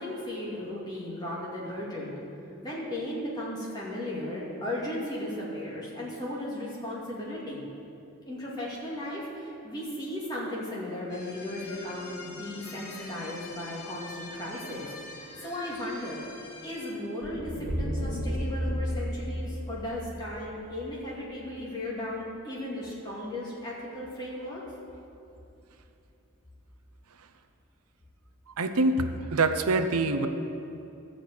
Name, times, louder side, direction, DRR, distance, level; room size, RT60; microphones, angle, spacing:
voice 1, 0.0-2.1 2.6-7.6 8.3-14.9 15.2-16.2 16.6-24.6, left 1 dB, 20° left, -6 dB, 2.3 m, -36 dB
sound 1, 11.1-16.9, left 2 dB, 90° left, 2.3 m, -45 dB
sound 2, 17.2-21.4, equal, 65° left, 2.9 m, -33 dB
voice 2, 28.6-30.3, right 2 dB, 90° right, 8 dB, 0.7 m, -25 dB
13.0 x 5.1 x 8.0 m, 2.7 s
head